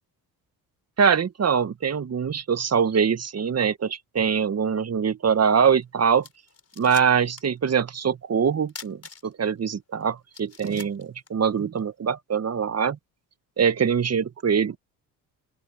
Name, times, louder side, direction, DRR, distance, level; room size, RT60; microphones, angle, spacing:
voice 1, 1.0-6.3 6.8-13.0 13.6-14.8, right 7 dB, 40° right, 1.8 m, -23 dB
sound 1, 5.8-5.9 6.2-7.6 7.9-8.0 8.7-9.6 10.0-10.1 10.3-11.9, left 5 dB, 35° left, 4.8 m, -43 dB
open air
supercardioid pair, 60°, 40 cm